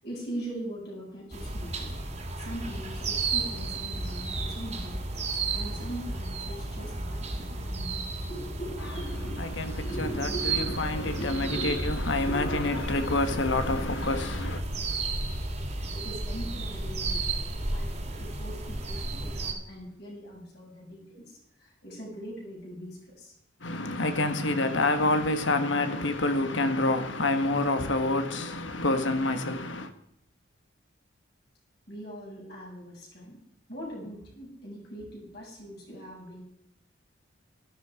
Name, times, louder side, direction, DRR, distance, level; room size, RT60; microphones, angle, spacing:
voice 1, 0.0-2.0 2.4-5.0 5.5-9.4 9.7-11.9 12.2-12.7 15.9-23.3 31.9-33.4 33.7-36.4, right 1 dB, 55° left, 7.1 m, -40 dB
sound 1, 1.3-19.5, right 2 dB, 35° right, 2.3 m, -33 dB
voice 2, 9.4-14.6 23.6-29.9, left 2 dB, 75° left, 1.5 m, -28 dB
13.0 x 13.0 x 5.0 m
head